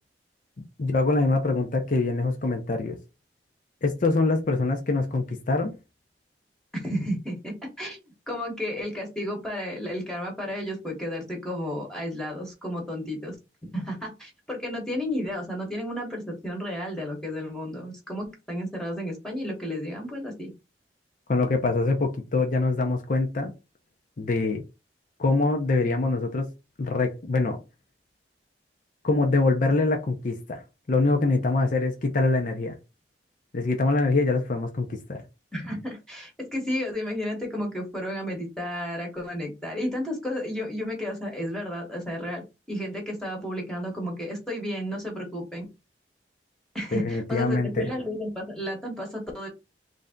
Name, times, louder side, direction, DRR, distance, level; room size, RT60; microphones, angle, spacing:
voice 1, 0.8-3.0 3.8-5.7 21.3-23.5 24.2-24.6 25.2-26.4 26.8-27.6 29.0-30.6 30.9-32.7 33.5-35.2 46.9-47.9, left 3 dB, 50° left, 0.6 m, -24 dB
voice 2, 6.7-8.0 8.3-13.4 13.7-20.5 35.5-45.7 46.7-49.5, left 1 dB, 5° left, 1.0 m, -32 dB
3.3 x 2.6 x 3.5 m
head